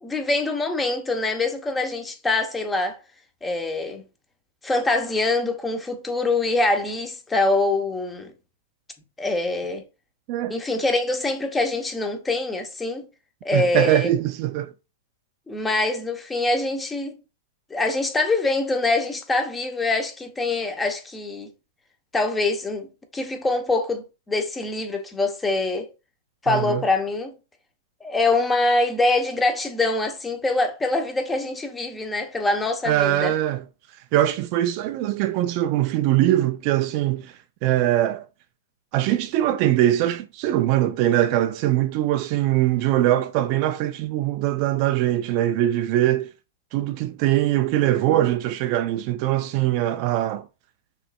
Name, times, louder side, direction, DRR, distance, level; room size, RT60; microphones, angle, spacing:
voice 1, 0.0-3.0 3.4-4.0 4.6-8.3 9.2-9.8 10.5-13.0 13.4-14.1 15.5-17.2 17.7-21.5 22.1-25.9 26.4-27.3 28.0-33.3, left 2 dB, 10° left, 0.8 m, -24 dB
voice 2, 13.5-14.7 26.5-26.8 32.8-33.6 34.1-38.3 38.9-46.3 46.7-50.5, right 13 dB, 40° right, 0.3 m, -22 dB
6.0 x 3.1 x 2.3 m
hypercardioid pair, 140°, 0 cm